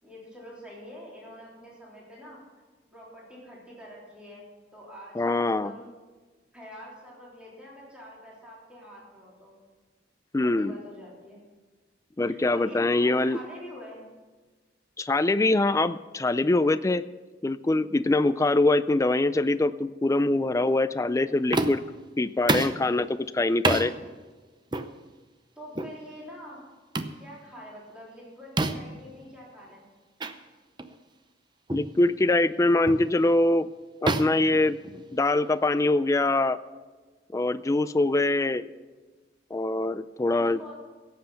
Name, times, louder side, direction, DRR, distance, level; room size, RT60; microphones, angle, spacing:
voice 1, 0.0-2.4 2.9-5.9 6.5-9.6 10.3-11.4 12.2-14.0 25.6-26.6 27.2-29.9 40.2-40.7, equal, 5° right, -6 dB, 3.5 m, -46 dB
voice 2, 5.2-5.7 10.3-10.8 12.2-13.4 15.0-17.1 17.4-21.8 22.2-23.9 31.7-33.7 34.0-34.8 35.1-36.6 37.3-38.7 39.5-40.6, left 2 dB, 15° left, 13 dB, 0.3 m, -23 dB
sound 1, 21.5-21.9 22.5-22.8 23.6-23.9 24.7-24.9 25.7-26.0 26.9-27.2 28.6-29.0 30.2-30.3 30.8-30.9 31.7-31.9 32.9-33.1 34.1-35.3, right 2 dB, 25° right, 0.6 m, -28 dB
17.0 x 7.7 x 5.7 m, 1.3 s
head